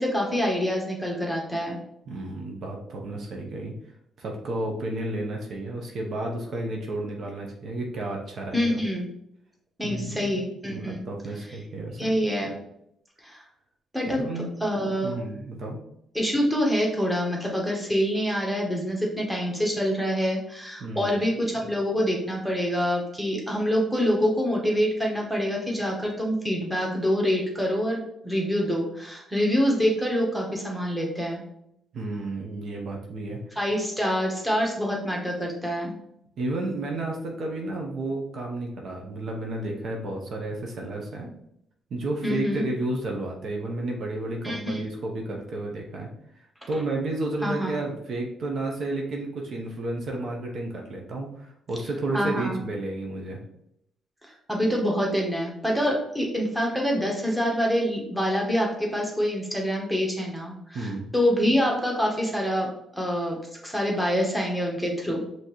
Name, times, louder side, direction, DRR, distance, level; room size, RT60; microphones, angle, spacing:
voice 1, 0.0-1.8 8.5-9.1 9.8-11.0 12.0-12.5 13.2-13.4 13.9-14.2 14.6-15.1 16.1-31.4 33.6-35.9 42.2-42.6 44.4-44.8 47.4-47.7 52.1-52.6 54.2-62.7 62.9-63.4 63.6-65.2, equal, 5° right, -1 dB, 1.3 m, -26 dB
voice 2, 2.1-3.7 4.2-8.8 9.8-10.2 10.7-12.1 14.1-14.6 15.0-15.8 20.8-21.1 31.9-33.6 36.4-41.3 41.9-46.1 46.4-53.4 60.7-61.1, right 2 dB, 60° right, 0 dB, 0.9 m, -32 dB
5.5 x 3.0 x 3.1 m, 0.77 s
cardioid pair, 90°, 0 cm